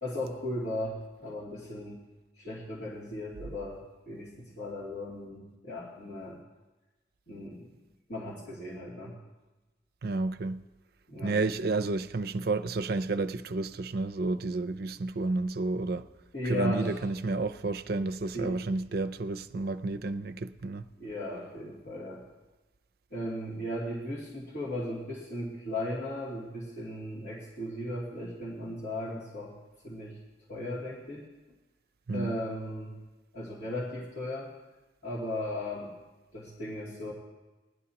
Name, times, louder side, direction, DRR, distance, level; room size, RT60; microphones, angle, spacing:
voice 1, 0.0-2.0 2.4-6.4 7.3-7.7 8.1-9.2 11.1-11.4 16.3-17.0 18.3-18.6 21.0-22.2 23.1-29.5 29.8-30.2 30.5-31.3 32.1-33.0 33.3-34.5 35.0-35.9 36.3-37.1, left 1 dB, 70° left, 2.7 m, -36 dB
voice 2, 10.0-10.6 11.2-16.1 16.4-20.8 32.1-32.4, right 3 dB, 55° right, 0.4 m, -31 dB
20.0 x 11.0 x 2.9 m
head